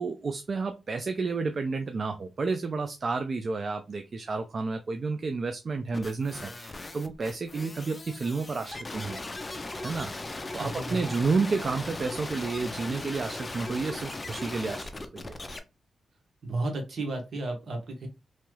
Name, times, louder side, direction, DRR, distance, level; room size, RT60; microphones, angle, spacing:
voice 1, 0.0-9.2 9.8-10.1 10.5-15.4, right 4 dB, 50° right, 7 dB, 0.3 m, -31 dB
sound 1, 5.9-15.6, left 2 dB, 25° left, 0.5 m, -38 dB
voice 2, 10.5-11.2 16.4-18.1, right 2 dB, 65° right, 3 dB, 1.1 m, -33 dB
3.0 x 2.2 x 3.1 m, 0.26 s
cardioid pair, 85°, 0 cm